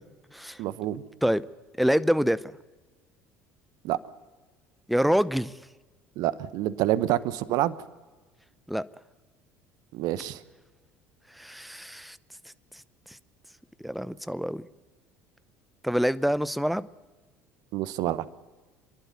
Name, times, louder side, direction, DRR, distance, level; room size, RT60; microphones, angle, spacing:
voice 1, 0.6-1.0 3.8-4.0 6.2-7.7 9.9-10.4 17.7-18.3, right 14 dB, 60° right, 17 dB, 1.0 m, -27 dB
voice 2, 1.8-2.4 4.9-5.5 8.7-8.8 11.3-12.2 13.8-14.6 15.8-16.9, equal, ahead, 17 dB, 0.7 m, -25 dB
27.5 x 11.5 x 9.5 m, 1.2 s
hypercardioid pair, 65°, 8 cm